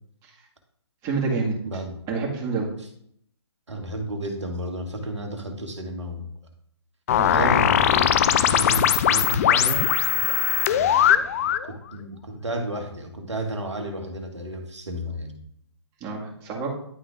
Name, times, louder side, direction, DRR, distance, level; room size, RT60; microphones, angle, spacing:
voice 1, 1.0-1.5 2.1-2.7 7.2-7.6 16.0-16.7, right 4 dB, 20° right, -2 dB, 2.2 m, -27 dB
voice 2, 1.7-2.0 3.7-6.3 7.2-9.9 10.7-15.4, right 1 dB, 80° right, 4 dB, 1.8 m, -32 dB
sound 1, 7.1-11.7, left 10 dB, 30° left, 0.5 m, -20 dB
11.0 x 3.8 x 3.7 m, 0.69 s
figure-of-eight pair, 140°, 15 cm